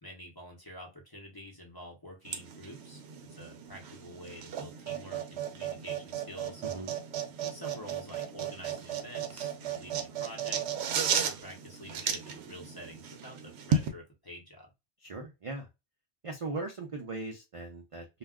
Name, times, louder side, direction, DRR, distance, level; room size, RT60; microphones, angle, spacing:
voice 1, 0.0-3.0 3.3-6.6 7.4-10.7 10.9-14.7, equal, 25° left, -1 dB, 0.7 m, -48 dB
sound 1, 2.3-13.9, right 7 dB, 70° right, 0.8 m, -35 dB
voice 2, 6.6-6.9 15.0-15.7 16.2-18.1, right 2 dB, 50° right, 2 dB, 0.4 m, -39 dB
2.3 x 2.1 x 3.5 m, 0.25 s
omnidirectional pair, 1.2 m